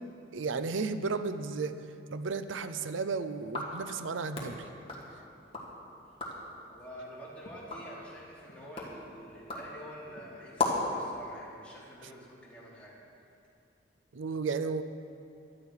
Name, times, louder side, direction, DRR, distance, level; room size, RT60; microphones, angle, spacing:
voice 1, 0.3-1.7 2.1-4.7 14.1-14.8, right 4 dB, 80° right, 11 dB, 0.6 m, -33 dB
sound 1, 3.4-5.7 6.0-6.5 7.0-11.0, left 3 dB, 30° left, 2.1 m, -38 dB
voice 2, 6.7-13.0, equal, 5° left, -8 dB, 3.3 m, -47 dB
16.5 x 12.5 x 4.8 m, 2.7 s
head